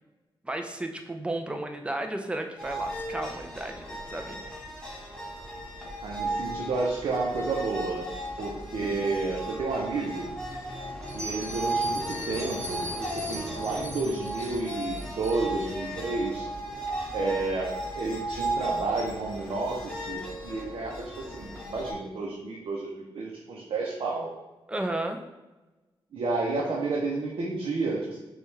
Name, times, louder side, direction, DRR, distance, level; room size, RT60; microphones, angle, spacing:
voice 1, 0.4-4.4 24.7-25.2, right 1 dB, 10° right, 5 dB, 0.5 m, -33 dB
sound 1, 2.6-21.9, right 1 dB, 10° left, 1.1 m, -35 dB
voice 2, 6.0-8.1 8.4-10.3 11.1-16.5 17.1-24.3 26.1-28.2, right 3 dB, 70° right, -3 dB, 0.6 m, -31 dB
Bell, 11.0-15.7, equal, 30° right, 1.1 m, -40 dB
6.0 x 2.4 x 3.2 m, 1.1 s
cardioid pair, 95°, 9 cm